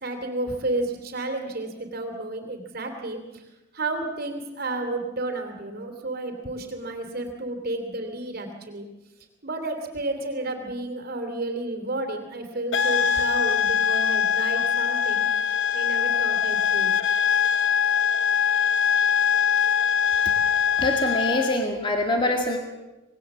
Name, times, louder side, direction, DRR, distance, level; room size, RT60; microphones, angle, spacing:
voice 1, 0.0-3.5 3.7-8.9 9.4-15.3 15.7-16.9, right 2 dB, 50° right, 4 dB, 3.0 m, -31 dB
sound 1, 12.7-21.6, left 7 dB, 75° left, 0.9 m, -22 dB
voice 2, 20.5-22.6, left 1 dB, 25° left, 3 dB, 2.1 m, -25 dB
25.5 x 20.5 x 7.3 m, 1.1 s
head